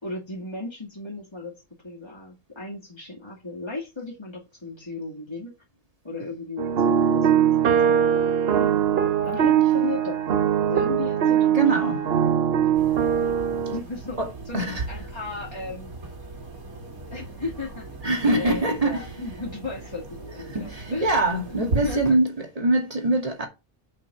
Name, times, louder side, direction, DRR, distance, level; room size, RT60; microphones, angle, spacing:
voice 1, 0.0-5.5 6.0-8.0 9.2-10.3 10.6-11.6 13.7-14.2 14.4-15.9 17.1-17.9 18.3-21.1 21.5-22.2, left 3 dB, 20° left, 2.4 m, -35 dB
sound 1, 6.6-13.8, right 9 dB, 55° right, 0.8 m, -21 dB
voice 2, 11.5-12.0 14.2-14.3 14.5-14.8 18.0-19.0 20.5-22.3 22.6-23.5, right 2 dB, 25° right, 2.3 m, -23 dB
sound 2, 12.7-22.1, right 2 dB, 80° right, 2.5 m, -37 dB
5.9 x 5.8 x 7.0 m
omnidirectional pair, 1.5 m